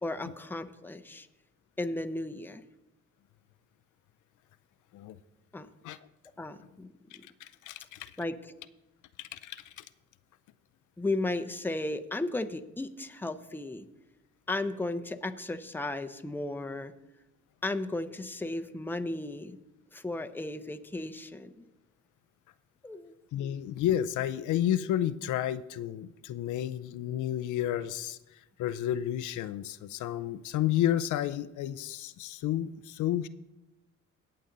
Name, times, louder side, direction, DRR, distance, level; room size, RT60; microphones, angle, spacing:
voice 1, 0.0-1.3 1.8-2.6 5.5-5.7 6.4-7.2 8.2-8.5 11.0-13.9 14.5-16.9 17.6-19.6 19.9-21.7 22.8-23.1, left 2 dB, 5° left, 7 dB, 0.7 m, -35 dB
voice 2, 7.4-8.2 9.2-9.8 23.3-33.3, left 11 dB, 80° left, 13 dB, 0.5 m, -31 dB
17.5 x 6.8 x 3.9 m, 0.98 s
cardioid pair, 90°, 30 cm